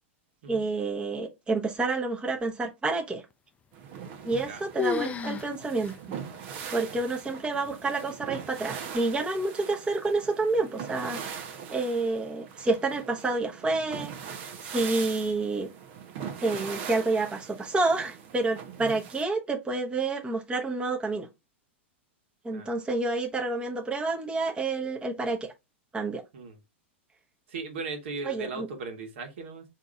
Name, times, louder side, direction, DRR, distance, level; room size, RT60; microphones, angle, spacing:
voice 1, 0.5-3.2 4.2-5.9 6.7-14.1 14.6-15.7 16.4-21.3 22.4-25.5 25.9-26.2 28.2-28.7, right 3 dB, 15° right, 1.0 m, -29 dB
sound 1, 3.7-19.2, right 7 dB, 55° right, 0.9 m, -41 dB
sound 2, 4.0-4.5 4.8-5.5 5.8-5.9 6.6-6.7 7.4-7.8, left 6 dB, 20° left, 0.4 m, -32 dB
voice 2, 27.5-29.6, right 4 dB, 70° right, 1.4 m, -37 dB
3.7 x 2.9 x 3.5 m
hypercardioid pair, 105°, 7 cm